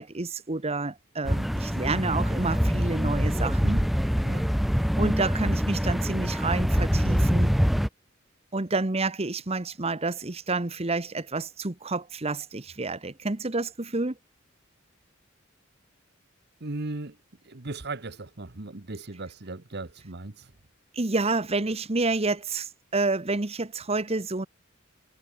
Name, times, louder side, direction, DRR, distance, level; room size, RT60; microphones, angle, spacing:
voice 1, 0.0-3.8 5.0-7.5 8.5-14.1 20.9-24.5, right 3 dB, 30° right, 1.1 m, -29 dB
sound 1, 1.2-7.9, equal, ahead, 0.7 m, -25 dB
voice 2, 16.6-17.2 17.4-20.5, right 2 dB, 55° right, 1.3 m, -37 dB
head